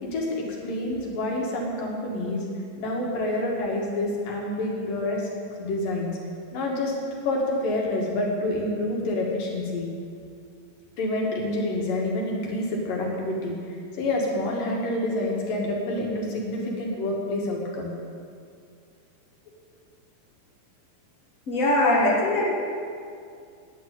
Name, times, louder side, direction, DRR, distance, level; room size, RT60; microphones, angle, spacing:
voice 1, 0.0-2.5 2.8-5.3 5.6-6.1 6.5-6.9 7.3-9.9 11.0-17.9, left 1 dB, 70° left, -2 dB, 3.8 m, -28 dB
voice 2, 21.5-22.4, left 1 dB, 25° left, -5 dB, 2.6 m, -21 dB
10.5 x 9.5 x 9.1 m, 2.3 s
omnidirectional pair, 4.1 m